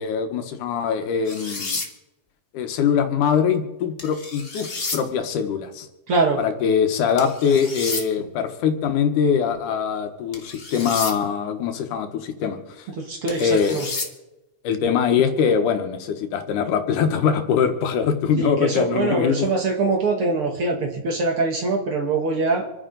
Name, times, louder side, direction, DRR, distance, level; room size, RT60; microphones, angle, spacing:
voice 1, 0.0-1.8 2.5-5.9 6.4-12.9 13.4-13.8 14.6-19.5, left 7 dB, 75° left, 7 dB, 2.6 m, -22 dB
sound 1, 1.2-1.9 4.0-5.0 7.2-8.0 10.3-11.1 13.3-14.1, left 3 dB, 50° left, 0.6 m, -31 dB
voice 2, 6.1-6.4 13.0-13.9 18.4-22.7, right 3 dB, 50° right, 2 dB, 1.9 m, -23 dB
27.5 x 9.9 x 3.9 m, 1.0 s
omnidirectional pair, 3.8 m